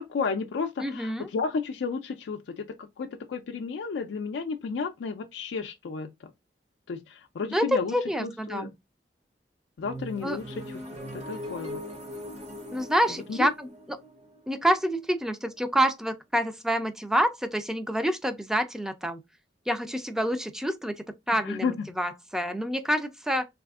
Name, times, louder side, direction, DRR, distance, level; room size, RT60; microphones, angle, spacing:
voice 1, 0.0-2.7 3.0-6.3 6.9-8.7 9.8-10.8 11.1-11.8 13.3-13.5 21.3-21.9, left 5 dB, 90° left, 0.4 m, -32 dB
voice 2, 0.8-1.3 7.5-8.7 10.2-10.4 12.7-14.0 14.5-19.2 19.7-23.5, equal, 5° right, 0.4 m, -27 dB
sound 1, 9.8-15.6, equal, 40° right, 0.9 m, -41 dB
3.4 x 2.4 x 2.3 m
head